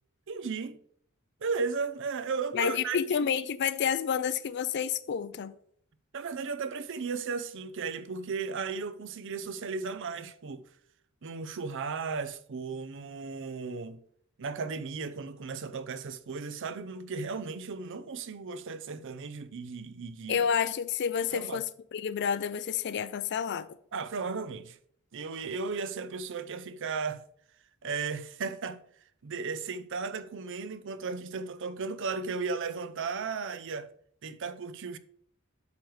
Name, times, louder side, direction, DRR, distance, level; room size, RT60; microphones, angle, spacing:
voice 1, 0.3-0.8 1.4-3.3 6.1-10.7 11.2-14.0 14.4-20.5 21.3-21.6 23.9-24.8 25.1-27.2 27.8-28.8 29.2-33.9 34.2-35.0, right 4 dB, 60° right, 0.6 m, -35 dB
voice 2, 2.5-5.5 20.3-21.7 21.9-23.7, left 7 dB, 55° left, 0.4 m, -29 dB
8.3 x 6.2 x 3.2 m
head